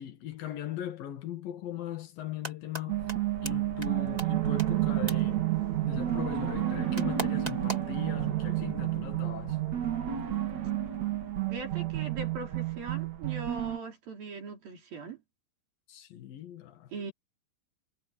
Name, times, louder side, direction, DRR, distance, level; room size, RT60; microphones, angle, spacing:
voice 1, 0.0-3.1 3.4-5.6 5.8-9.6 15.9-16.9, left 11 dB, 80° left, 3.7 m, -39 dB
sound 1, 2.2-2.8 3.1-3.2 3.5-3.6 3.8-3.9 4.2-4.3 4.6-4.7 5.1-5.2 7.0-7.9, right 1 dB, 10° right, 2.6 m, -35 dB
sound 2, 2.9-13.8, right 13 dB, 55° right, 3.5 m, -30 dB
voice 2, 11.5-15.2 16.9-17.1, right 5 dB, 85° right, 6.8 m, -40 dB
omnidirectional pair, 4.0 m